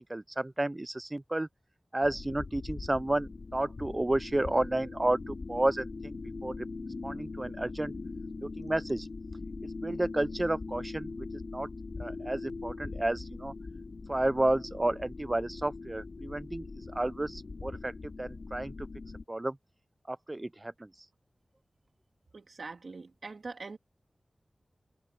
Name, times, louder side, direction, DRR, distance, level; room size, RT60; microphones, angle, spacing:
voice 1, 0.1-1.5 1.9-6.1 6.4-6.5 7.0-7.9 8.4-9.1 9.8-11.1 11.5-11.7 12.0-13.5 14.1-16.7 16.9-17.9 18.2-18.7 19.3-19.5 20.1-20.7, right 1 dB, 25° right, 0.6 m, -31 dB
sound 1, 2.0-19.2, left 3 dB, 75° left, 3.1 m, -41 dB
voice 2, 22.3-23.8, right 3 dB, 80° right, 2.6 m, -43 dB
wide cardioid pair, 70°, 0 cm